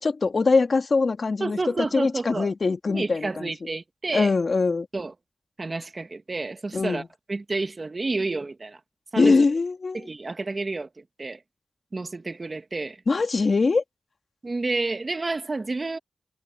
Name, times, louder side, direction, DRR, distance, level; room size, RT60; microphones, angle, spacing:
voice 1, 0.0-1.6 1.9-3.5 4.1-4.9 6.7-7.1 9.2-10.1 13.1-13.8, left 4 dB, 60° left, 2.7 m, -22 dB
voice 2, 1.4-2.5 2.9-4.3 4.9-5.1 5.6-7.0 7.3-8.8 9.1-9.4 9.9-11.4 11.9-13.0 14.4-16.0, right 3 dB, 45° right, 1.8 m, -30 dB
cardioid pair, 60°, 0 cm